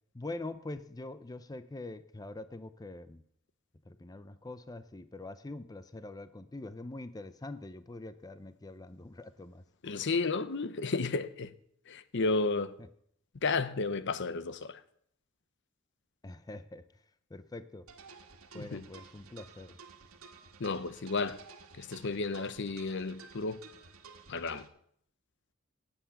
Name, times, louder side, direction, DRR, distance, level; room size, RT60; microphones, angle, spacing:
voice 1, 0.1-3.2 3.9-9.6 12.8-12.9 16.2-17.0 17.3-17.9 18.5-19.8, left 2 dB, 20° left, 0.5 m, -44 dB
voice 2, 9.8-11.5 11.9-12.7 13.4-14.8 18.5-18.8 20.6-21.4 21.8-23.6 24.3-24.7, left 3 dB, 60° left, 0.8 m, -32 dB
sound 1, 17.9-24.7, right 5 dB, 85° right, 1.8 m, -53 dB
17.5 x 8.0 x 7.0 m
head